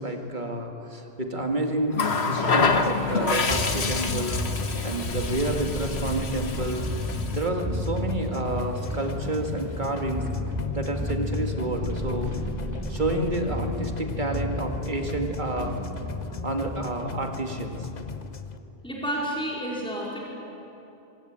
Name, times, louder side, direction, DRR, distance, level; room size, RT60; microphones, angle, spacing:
voice 1, 0.0-6.8 7.3-10.2 10.7-12.3 12.9-15.8 16.4-17.9, right 1 dB, 50° right, 3 dB, 2.2 m, -29 dB
Water tap faucet, 1.9-7.5 8.7-8.9, left 4 dB, 85° left, 1.6 m, -27 dB
sound 1, 2.6-18.6, left 4 dB, 45° left, 1.0 m, -37 dB
sound 2, 3.5-16.8, left 1 dB, 15° right, 3.2 m, -33 dB
voice 2, 18.8-20.2, equal, 5° left, -4 dB, 4.3 m, -30 dB
25.5 x 17.0 x 8.8 m, 2.9 s
omnidirectional pair, 1.1 m